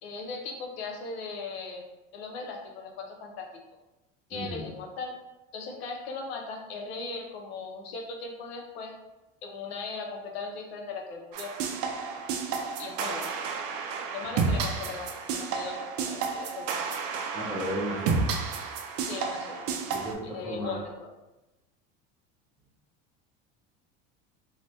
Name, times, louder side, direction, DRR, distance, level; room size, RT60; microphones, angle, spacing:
voice 1, 0.0-1.8 2.1-3.5 4.3-5.2 5.5-8.9 9.4-11.5 12.8-13.4 14.1-16.8 19.0-19.7 20.2-21.1, left 4 dB, 85° left, 2 dB, 0.7 m, -38 dB
voice 2, 4.3-4.6 17.3-18.3 19.9-20.7, equal, 5° right, -9 dB, 0.6 m, -34 dB
sound 1, 11.3-20.1, right 5 dB, 50° right, 0.4 m, -31 dB
2.7 x 2.2 x 3.2 m, 1.0 s
supercardioid pair, 115°, 31 cm